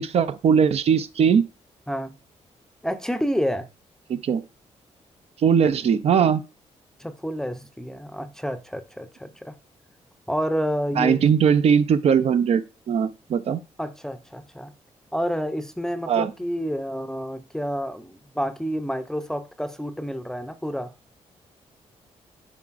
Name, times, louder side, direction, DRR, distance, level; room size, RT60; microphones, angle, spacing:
voice 1, 0.0-1.4 4.1-4.4 5.4-6.4 11.0-12.6 12.9-13.6 16.1-16.3, right 7 dB, 60° right, 0.5 m, -20 dB
voice 2, 2.8-3.7 7.0-9.6 10.3-11.2 13.8-14.7 15.1-20.9, equal, 5° left, 0.6 m, -29 dB
9.7 x 4.8 x 2.5 m
cardioid pair, 125°, 12 cm